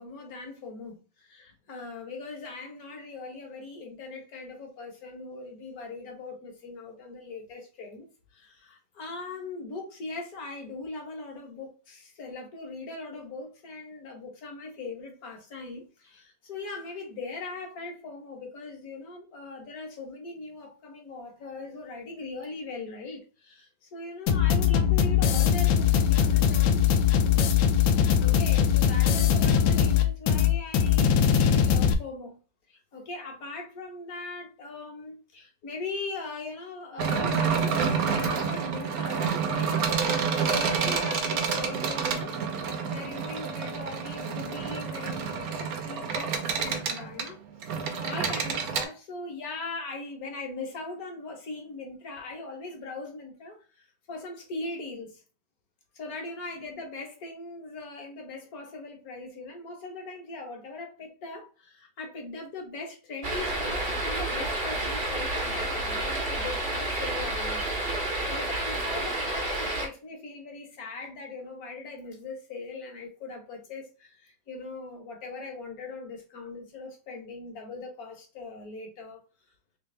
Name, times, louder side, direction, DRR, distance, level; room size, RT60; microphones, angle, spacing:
voice 1, 0.0-8.1 8.3-27.0 28.2-32.4 32.7-42.3 42.7-47.4 47.7-55.2 55.9-79.2, left 3 dB, 55° left, 1.6 m, -40 dB
sound 1, 24.3-31.9, left 8 dB, 85° left, 1.3 m, -21 dB
sound 2, 37.0-48.8, right 6 dB, 60° right, 1.0 m, -28 dB
sound 3, 63.2-69.9, right 2 dB, 40° right, 1.0 m, -30 dB
3.5 x 3.2 x 3.2 m
omnidirectional pair, 2.1 m